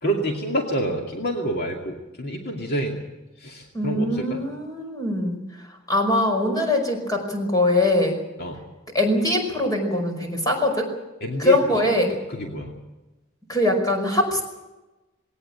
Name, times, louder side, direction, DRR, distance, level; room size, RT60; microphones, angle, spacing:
voice 1, 0.0-3.0 3.4-4.4 8.4-8.6 11.2-11.9 12.3-12.8, right 1 dB, 50° left, 1 dB, 2.3 m, -28 dB
voice 2, 3.7-5.4 5.9-8.2 8.9-10.9 11.4-12.1 13.5-14.4, left 1 dB, 20° left, 3 dB, 5.2 m, -22 dB
19.5 x 18.0 x 9.0 m, 1.1 s
head